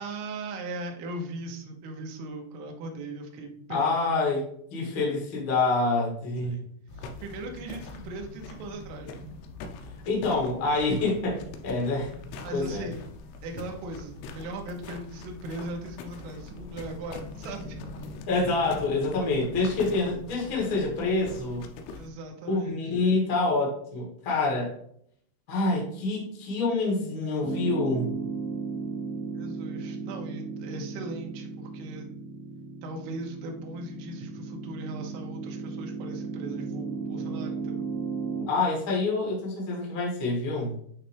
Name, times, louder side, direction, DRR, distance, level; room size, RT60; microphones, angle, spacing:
voice 1, 0.0-4.0 6.4-6.6 6.9-9.3 12.4-13.1 13.4-17.8 21.9-22.8 29.4-32.1 32.8-37.9, right 2 dB, 75° right, 2 dB, 2.4 m, -39 dB
voice 2, 3.7-4.4 4.7-6.6 10.0-12.1 12.5-12.9 18.3-21.7 22.5-24.7 25.5-28.1 38.5-40.8, left 3 dB, 65° left, -3 dB, 1.2 m, -27 dB
sound 1, 6.9-22.1, left 3 dB, 80° left, 2.7 m, -42 dB
Piano, 27.4-38.4, right 5 dB, 60° right, 2.4 m, -35 dB
9.0 x 3.2 x 3.4 m, 0.66 s
omnidirectional pair, 5.8 m